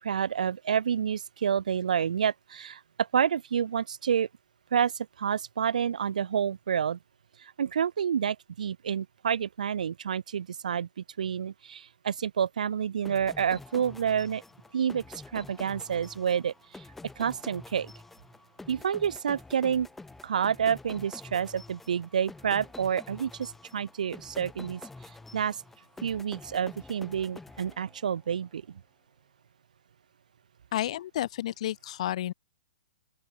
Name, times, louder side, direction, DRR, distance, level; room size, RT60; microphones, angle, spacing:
voice 1, 0.0-4.3 4.7-7.0 7.4-14.4 14.7-15.0 15.3-16.8 17.2-17.9 18.7-19.9 20.2-25.6 26.0-28.8, right 8 dB, 80° right, 2.3 m, -29 dB
sound 1, 13.0-28.3, left 3 dB, 5° left, 6.1 m, -48 dB
voice 2, 30.7-32.3, left 12 dB, 55° left, 0.6 m, -31 dB
open air
hypercardioid pair, 150°, 4 cm